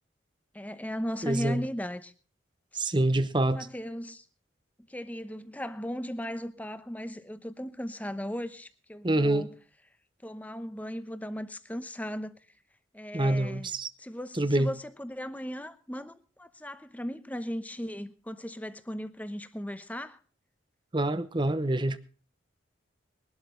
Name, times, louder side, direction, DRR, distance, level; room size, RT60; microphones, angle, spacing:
voice 1, 0.5-2.1 3.4-4.3 4.9-9.5 10.2-12.3 12.9-13.7 14.0-20.2, equal, 10° left, 0.9 m, -37 dB
voice 2, 1.2-1.6 2.7-3.7 9.0-9.5 13.1-13.9 14.4-14.7 20.9-22.0, right 1 dB, 25° right, 0.8 m, -26 dB
21.5 x 12.0 x 3.8 m
head